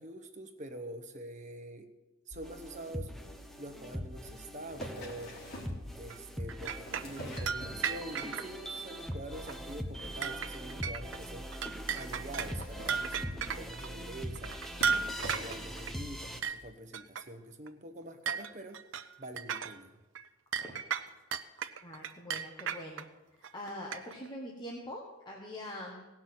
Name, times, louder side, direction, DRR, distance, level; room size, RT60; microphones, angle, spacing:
voice 1, 0.0-1.9 2.3-3.1 3.6-5.4 6.0-11.5 11.9-14.6 15.2-18.8 19.2-19.9, right 1 dB, 35° right, 6 dB, 1.1 m, -45 dB
sound 1, 2.3-16.4, equal, ahead, 0.9 m, -42 dB
sound 2, 4.7-5.8 6.6-8.2 8.6-9.0 9.3-9.5 9.7-9.8 10.0-10.1 10.4-10.5 11.1-11.2 12.2-13.5 14.3-14.4 14.7-15.8 16.5-16.6, equal, 55° left, 3.4 m, -45 dB
sound 3, 6.1-8.5 9.1-9.2 9.5-9.7 10.0-11.2 11.5-13.9 14.3-15.9 16.4-16.6 16.9-17.2 17.7-17.8 18.3-19.8 20.1-20.2 20.5-23.0 23.4-24.3, right 6 dB, 65° right, 0.6 m, -35 dB
voice 2, 21.8-23.1 23.5-26.1, left 1 dB, 20° left, -2 dB, 1.4 m, -43 dB
17.5 x 6.0 x 7.8 m, 1.1 s
head